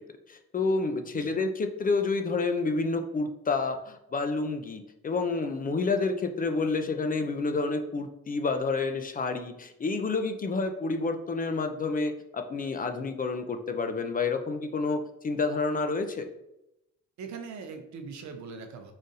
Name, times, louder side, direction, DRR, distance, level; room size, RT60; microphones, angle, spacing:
voice 1, 0.3-16.3, left 3 dB, 30° left, 7 dB, 0.4 m, -29 dB
voice 2, 17.2-18.9, right 5 dB, 70° right, 6 dB, 0.7 m, -41 dB
4.0 x 2.5 x 3.9 m, 0.88 s
cardioid pair, 90°, 30 cm